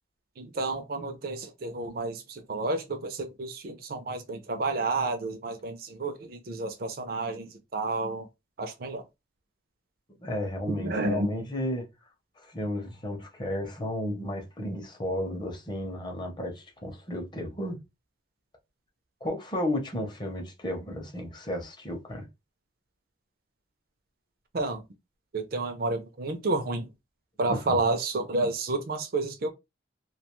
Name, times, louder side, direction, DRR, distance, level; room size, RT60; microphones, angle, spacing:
voice 1, 0.4-8.3 8.6-9.0 10.7-11.3 24.5-24.8 25.3-26.9 27.4-29.5, right 2 dB, 50° right, 0.5 m, -30 dB
voice 2, 10.2-11.9 12.4-17.8 19.2-22.3 27.5-27.8, left 1 dB, 25° left, 0.6 m, -33 dB
2.4 x 2.2 x 2.9 m
head